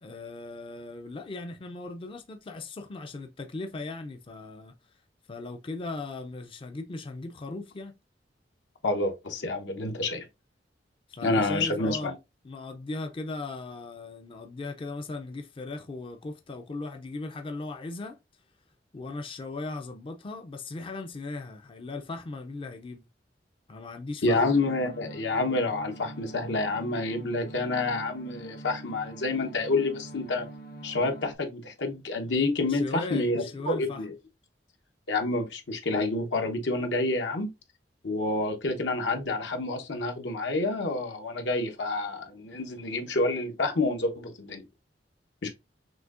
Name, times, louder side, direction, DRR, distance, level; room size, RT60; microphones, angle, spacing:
voice 1, 0.0-4.7 5.3-8.0 11.1-12.2 12.4-18.2 18.9-23.1 23.7-24.4 32.7-34.1, left 3 dB, 30° left, 0.4 m, -38 dB
voice 2, 8.8-10.2 11.2-12.1 24.2-30.5 30.8-34.1 35.1-37.5 38.0-44.6 45.4-45.5, left 2 dB, 85° left, 1.0 m, -28 dB
sound 1, 24.3-31.4, right 2 dB, 60° left, 0.8 m, -44 dB
6.1 x 2.7 x 2.5 m
head